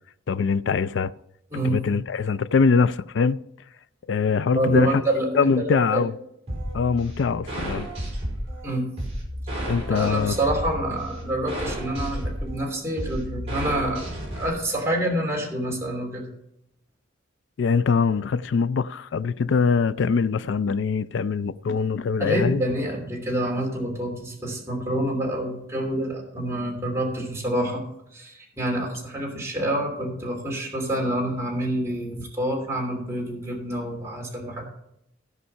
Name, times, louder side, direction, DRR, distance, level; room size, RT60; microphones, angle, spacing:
voice 1, 0.3-1.1 1.6-3.4 4.1-5.0 5.3-6.1 6.7-7.9 9.7-10.4 17.6-22.6, left 5 dB, 65° left, 0.4 m, -23 dB
voice 2, 1.5-1.8 4.5-6.0 8.6-8.9 9.9-14.0 14.3-16.3 22.2-27.8 28.1-34.7, right 1 dB, 15° right, 3.0 m, -27 dB
sound 1, 6.5-14.5, equal, 35° right, 4.7 m, -32 dB
15.5 x 5.5 x 5.6 m
head